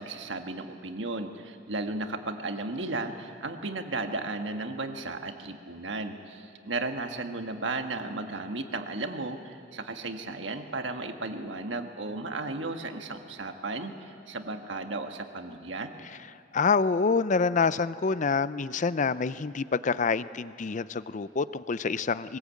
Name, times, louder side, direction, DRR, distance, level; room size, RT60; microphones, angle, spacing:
voice 1, 0.0-15.9, right 2 dB, 65° right, 5 dB, 1.6 m, -35 dB
voice 2, 16.5-22.4, left 4 dB, 40° left, 16 dB, 0.5 m, -27 dB
22.5 x 20.5 x 8.5 m, 2.4 s
head